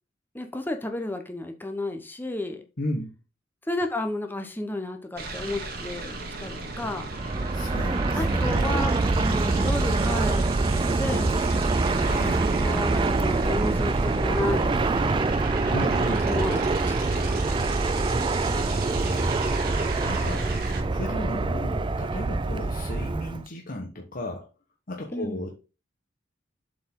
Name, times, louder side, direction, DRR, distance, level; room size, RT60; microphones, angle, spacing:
voice 1, 0.3-2.6 3.7-7.1 8.2-10.4 11.0-11.5 12.5-15.1 16.2-17.5 25.1-25.5, left 2 dB, 10° left, 5 dB, 0.8 m, -32 dB
voice 2, 2.8-3.1 7.5-8.6 12.0-12.5 15.7-16.2 18.5-19.5 19.7-20.5 20.9-24.5 24.9-25.5, left 1 dB, 45° left, 0 dB, 1.2 m, -35 dB
sound 1, 5.2-20.8, right 3 dB, 55° right, 1.6 m, -36 dB
Fixed-wing aircraft airplane, 7.0-23.4, right 3 dB, 25° right, 0.4 m, -25 dB
7.6 x 4.6 x 3.7 m, 0.31 s
head